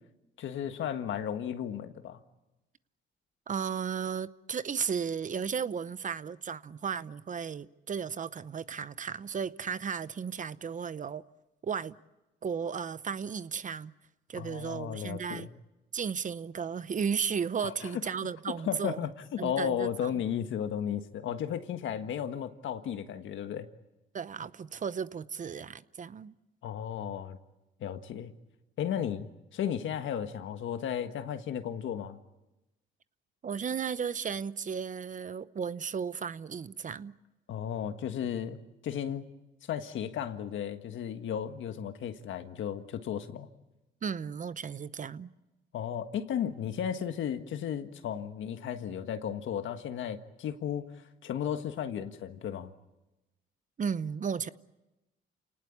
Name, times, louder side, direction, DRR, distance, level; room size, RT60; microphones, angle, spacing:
voice 1, 0.4-2.2 14.3-15.5 17.6-18.0 18.6-23.7 26.6-27.4 27.8-28.3 28.8-29.3 29.5-32.2 37.5-38.6 38.8-39.3 39.7-43.5 45.7-50.9 51.2-52.7, left 9 dB, 75° left, 1.6 m, -34 dB
voice 2, 3.5-11.2 11.6-11.9 12.4-13.9 14.3-15.5 15.9-19.1 19.4-20.1 24.1-26.3 33.4-37.1 44.0-45.3 53.8-54.5, right 6 dB, 40° right, 0.8 m, -34 dB
29.0 x 19.0 x 8.5 m
cardioid pair, 90°, 20 cm